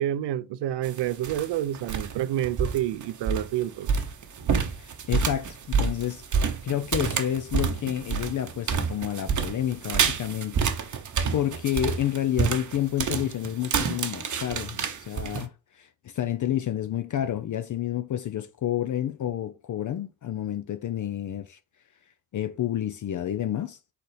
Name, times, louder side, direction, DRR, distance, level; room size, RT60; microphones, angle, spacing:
voice 1, 0.0-3.9, right 12 dB, 60° right, 0.5 m, -28 dB
sound 1, 0.8-1.5 1.7-2.2 2.4-15.4, right 6 dB, 40° right, 0.8 m, -28 dB
voice 2, 4.8-6.2 6.6-10.9 11.3-21.6 22.3-23.8, left 11 dB, 40° left, 0.5 m, -29 dB
4.1 x 4.1 x 3.2 m
supercardioid pair, 60°, 48 cm